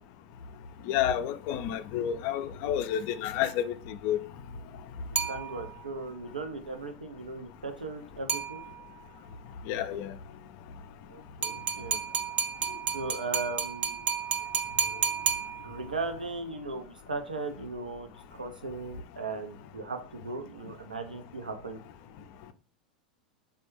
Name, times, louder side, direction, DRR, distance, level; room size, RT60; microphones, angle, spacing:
voice 1, 0.9-4.2 9.7-10.1, left 10 dB, 50° left, 0.4 m, -30 dB
sound 1, 5.2-6.0 8.3-9.0 11.4-16.0, right 7 dB, 30° right, 0.5 m, -32 dB
voice 2, 5.3-8.6 11.1-12.0 12.9-14.2 15.6-18.1 18.4-21.8, right 3 dB, 85° right, 0.5 m, -37 dB
3.3 x 2.2 x 3.0 m
figure-of-eight pair, 90°, 4 cm